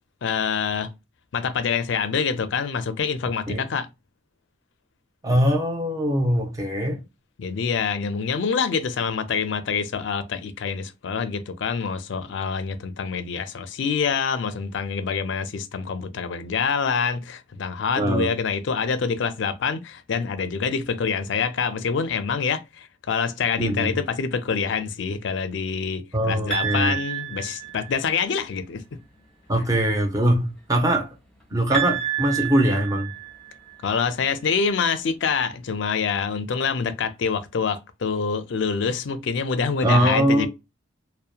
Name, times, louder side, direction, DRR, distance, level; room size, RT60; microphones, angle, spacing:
voice 1, 0.2-0.9 1.3-3.9 7.4-29.0 33.8-40.5, left 5 dB, 65° left, 0.4 m, -26 dB
voice 2, 5.2-7.0 18.0-18.3 23.6-24.0 26.1-26.9 29.5-31.1 31.5-33.1 39.8-40.5, right 1 dB, 15° right, 0.6 m, -22 dB
sound 1, 26.5-28.2 31.7-33.8, right 10 dB, 5° left, 0.9 m, -29 dB
2.8 x 2.1 x 2.3 m
head